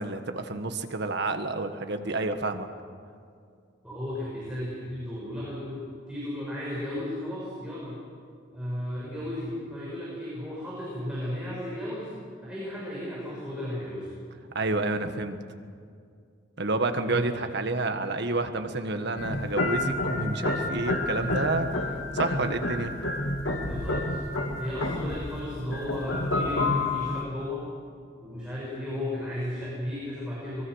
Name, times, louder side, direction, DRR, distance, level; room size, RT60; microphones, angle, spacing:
voice 1, 0.0-2.7 14.5-15.4 16.6-22.9, right 2 dB, 60° right, 7 dB, 1.6 m, -29 dB
voice 2, 3.8-8.0 8.5-12.1 12.4-14.1 17.0-17.3 23.6-24.2 24.6-27.7 28.2-30.6, left 1 dB, 5° right, -7 dB, 6.6 m, -34 dB
sound 1, 19.2-27.2, left 2 dB, 90° left, 2.3 m, -29 dB
25.0 x 22.0 x 6.4 m, 2.2 s
head